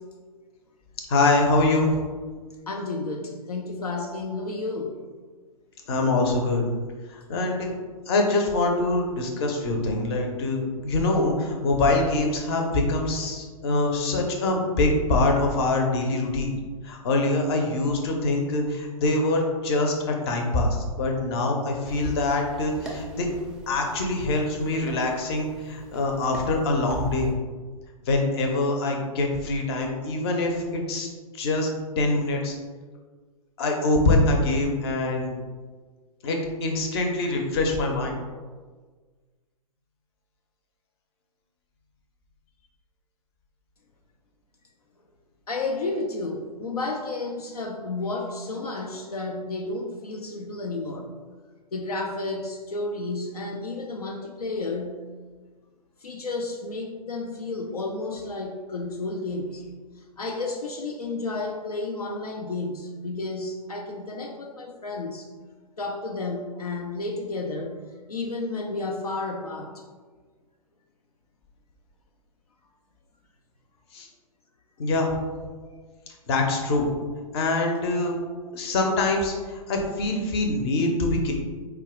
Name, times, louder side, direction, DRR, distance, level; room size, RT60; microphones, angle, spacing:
voice 1, 1.1-1.9 5.9-6.7 7.1-7.7 8.1-16.5 16.8-23.3 23.7-27.3 28.1-31.7 32.0-32.6 33.6-35.4 36.2-38.2 73.9-74.1 74.8-75.1 76.3-76.9 77.3-78.2 78.5-81.3, left 2 dB, 45° left, 2 dB, 0.7 m, -24 dB
voice 2, 2.4-5.0 45.5-51.1 51.7-55.1 56.0-59.7 60.0-65.3 65.8-67.8 68.1-69.8 78.2-78.3, left 3 dB, 80° left, 2 dB, 0.4 m, -32 dB
sound 1, 21.9-27.3, right 1 dB, 5° right, 0.4 m, -39 dB
4.5 x 2.3 x 3.6 m, 1.4 s
figure-of-eight pair, 105°, 19 cm